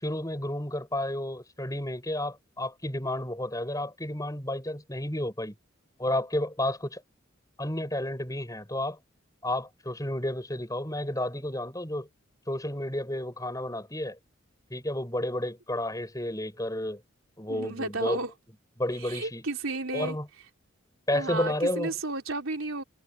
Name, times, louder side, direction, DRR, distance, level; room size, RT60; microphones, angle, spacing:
voice 1, 0.0-5.5 6.0-7.0 7.6-9.0 9.4-12.1 12.5-14.2 14.7-17.0 17.4-18.2 18.8-19.4 19.9-20.3 21.1-21.9, left 1 dB, 15° left, 6.6 m, -31 dB
voice 2, 17.5-18.3 19.0-20.2 21.1-22.8, right 3 dB, 85° right, 3.6 m, -33 dB
head